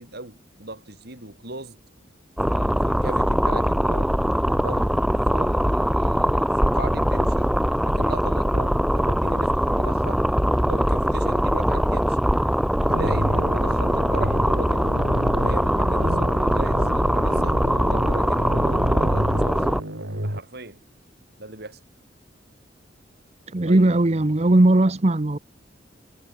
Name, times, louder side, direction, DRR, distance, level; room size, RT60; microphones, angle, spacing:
voice 1, 0.0-1.8 2.5-4.1 4.5-5.0 5.3-7.5 7.8-10.2 10.7-12.2 12.7-14.9 15.3-19.7 20.2-20.8 21.4-21.8 23.7-23.9, right 2 dB, 55° right, 6.0 m, -38 dB
sound 1, 2.4-19.8, equal, ahead, 1.0 m, -22 dB
sound 2, 12.9-20.4, right 1 dB, 75° right, 7.2 m, -30 dB
voice 2, 23.5-25.4, right 2 dB, 35° right, 0.9 m, -18 dB
head